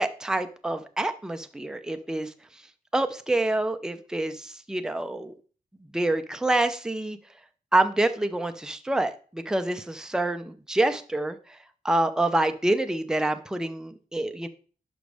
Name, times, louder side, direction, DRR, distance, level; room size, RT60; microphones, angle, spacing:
voice 1, 0.0-2.3 2.9-5.3 5.9-7.2 7.7-11.6 11.8-14.5, right 2 dB, 5° right, 8 dB, 0.5 m, -27 dB
11.0 x 5.2 x 3.4 m, 0.41 s
wide cardioid pair, 150°, 14 cm